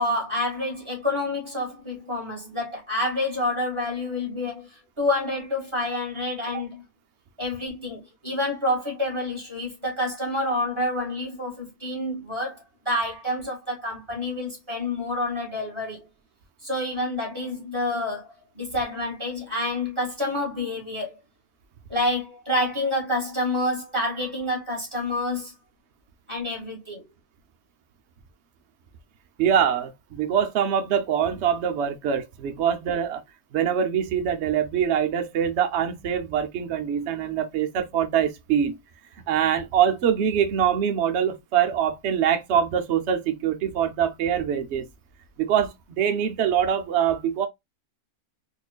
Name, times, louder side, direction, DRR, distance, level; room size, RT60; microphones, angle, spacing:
voice 1, 0.0-4.7 5.0-6.9 7.4-16.1 16.6-18.3 18.6-21.1 21.9-25.5 26.3-27.1, left 1 dB, 20° right, 1.8 m, -28 dB
voice 2, 29.4-33.2 33.5-38.8 39.3-44.9 45.4-47.5, right 8 dB, 55° right, 0.9 m, -24 dB
4.2 x 2.6 x 2.2 m
omnidirectional pair, 1.6 m